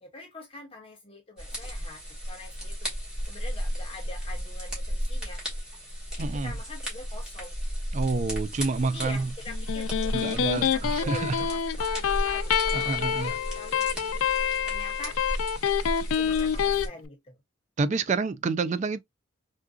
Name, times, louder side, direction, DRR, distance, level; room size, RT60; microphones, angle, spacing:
voice 1, 0.0-2.0 2.3-2.9 3.2-5.4 6.2-7.6 8.8-14.3 14.6-15.2 16.1-17.4, left 2 dB, 30° left, 0.7 m, -44 dB
sound 1, 1.4-16.9, equal, 5° right, 1.5 m, -34 dB
voice 2, 6.2-6.5 7.9-9.3 10.1-11.4 12.7-13.4 17.8-19.0, right 4 dB, 35° right, 0.3 m, -28 dB
Electric guitar, 9.5-16.9, left 8 dB, 80° left, 0.3 m, -27 dB
3.8 x 2.5 x 2.3 m
head